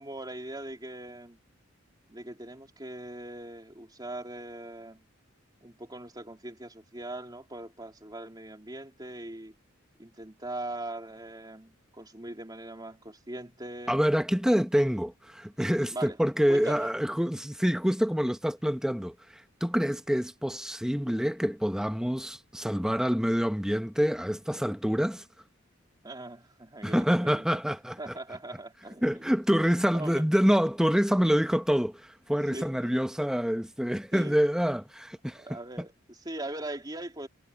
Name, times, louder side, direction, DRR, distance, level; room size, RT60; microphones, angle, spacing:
voice 1, 0.0-1.4 2.1-5.0 5.6-9.5 10.0-14.0 15.9-16.2 16.5-16.9 26.0-27.6 28.0-29.3 29.9-30.2 32.5-33.0 34.1-34.4 35.4-37.3, right 1 dB, 20° right, 3.0 m, -40 dB
voice 2, 13.9-25.2 26.8-28.1 29.0-35.5, equal, 5° right, 1.0 m, -26 dB
head